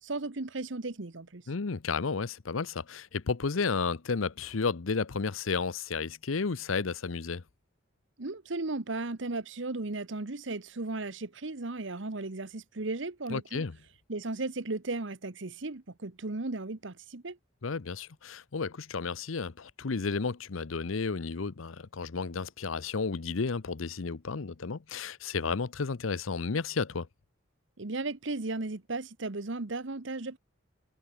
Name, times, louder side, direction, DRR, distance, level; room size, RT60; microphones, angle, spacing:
voice 1, 0.0-1.4 8.2-13.7 14.1-17.4 27.8-30.4, right 3 dB, 70° right, 1.2 m, -35 dB
voice 2, 1.5-7.4 13.3-13.7 17.6-27.1, left 4 dB, 90° left, 0.8 m, -32 dB
head